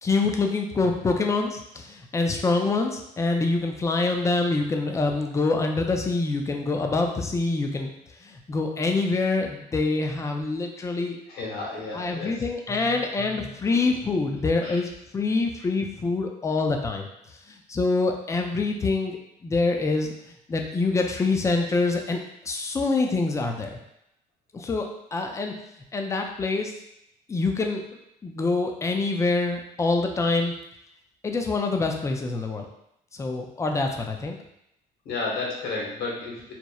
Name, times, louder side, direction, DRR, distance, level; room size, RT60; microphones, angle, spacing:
voice 1, 0.0-7.9 8.2-11.2 11.9-17.1 17.5-20.1 20.5-23.8 24.5-25.6 25.9-26.7 27.3-27.8 28.2-30.5 31.2-32.7 33.2-34.4, left 3 dB, 20° left, 3 dB, 0.3 m, -25 dB
voice 2, 11.3-12.4 13.7-13.9 14.6-14.8 35.0-36.5, left 3 dB, 75° left, -3 dB, 0.9 m, -32 dB
2.9 x 2.0 x 2.2 m, 0.79 s
cardioid pair, 110°, 17 cm